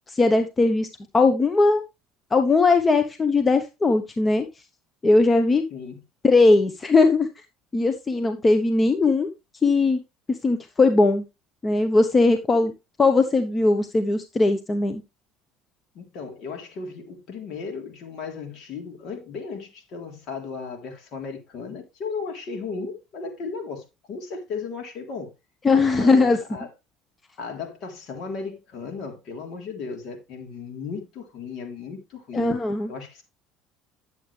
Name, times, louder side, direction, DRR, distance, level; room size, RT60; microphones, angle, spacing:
voice 1, 0.1-0.9 1.1-1.8 2.3-4.5 5.0-5.6 6.2-7.3 7.7-9.3 9.6-10.0 10.3-11.2 11.6-12.7 13.0-15.0 25.6-26.4 32.3-32.9, left 3 dB, 25° left, 1.1 m, -19 dB
voice 2, 5.7-6.0 15.9-25.3 26.0-26.7 27.4-32.5 32.9-33.2, left 5 dB, 55° left, 3.7 m, -35 dB
10.5 x 8.0 x 3.4 m
hypercardioid pair, 75°, 0 cm